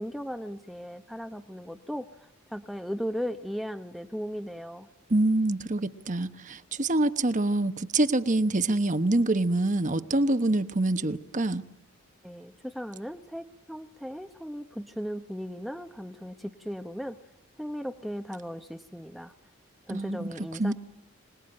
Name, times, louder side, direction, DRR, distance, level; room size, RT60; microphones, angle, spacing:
voice 1, 0.0-2.1 2.5-4.9 12.2-17.2 17.6-19.3 19.9-20.7, equal, ahead, 6 dB, 0.9 m, -37 dB
voice 2, 5.1-11.6 19.9-20.7, right 2 dB, 35° right, 10 dB, 1.1 m, -26 dB
26.0 x 20.0 x 8.9 m, 0.88 s
head